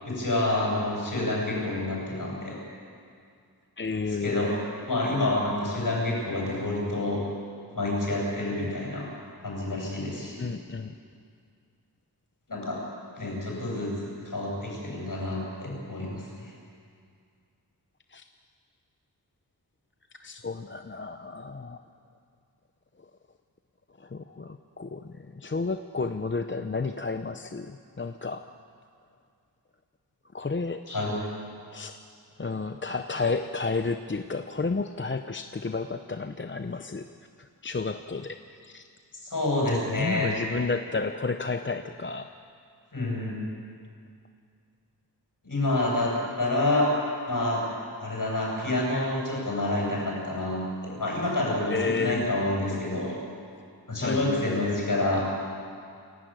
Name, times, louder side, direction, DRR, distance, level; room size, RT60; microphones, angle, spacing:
voice 1, 0.0-2.6 4.1-4.5 4.9-7.2 7.7-9.1 9.4-10.5 12.5-12.8 13.2-13.9 14.2-16.5 30.9-31.2 39.2-40.4 42.9-43.4 45.4-46.9 47.2-47.6 48.0-53.2 53.9-55.3, left 2 dB, 55° left, -2 dB, 7.6 m, -28 dB
voice 2, 3.8-4.5 10.4-10.9 18.1-18.2 20.2-21.8 24.0-28.5 30.3-30.9 31.7-32.0 32.4-37.1 37.4-38.8 39.7-42.3 51.7-52.3 54.0-54.7, left 4 dB, 30° left, 8 dB, 0.7 m, -31 dB
29.5 x 11.0 x 9.1 m, 2.3 s
wide cardioid pair, 90°, 40 cm